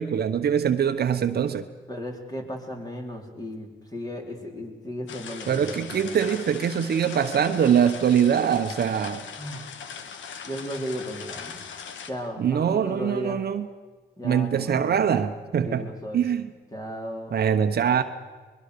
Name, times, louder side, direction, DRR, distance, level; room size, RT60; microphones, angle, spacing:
voice 1, 0.0-1.7 5.5-9.2 12.4-13.7 14.2-16.5 17.3-18.0, right 8 dB, 55° right, 8 dB, 1.1 m, -23 dB
voice 2, 1.9-6.3 9.4-9.7 10.4-11.6 12.1-13.4 14.2-15.0 15.6-16.2 16.7-17.4, equal, 20° left, 2 dB, 4.2 m, -35 dB
sound 1, 5.1-12.1, left 6 dB, 70° left, 1.7 m, -40 dB
22.5 x 21.0 x 6.9 m, 1.4 s
cardioid pair, 90°, 20 cm